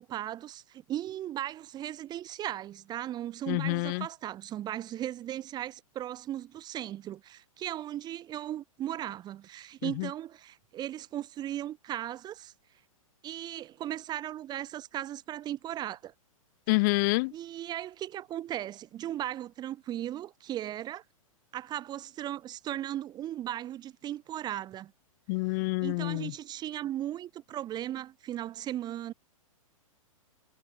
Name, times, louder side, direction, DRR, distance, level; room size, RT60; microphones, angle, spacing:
voice 1, 0.0-12.5 13.2-16.1 17.3-21.0 21.5-24.9 25.8-29.1, right 12 dB, 25° right, 1.1 m, -37 dB
voice 2, 3.5-4.0 16.7-17.3 25.3-26.3, left 27 dB, 35° left, 0.4 m, -27 dB
figure-of-eight pair, 115°, 18 cm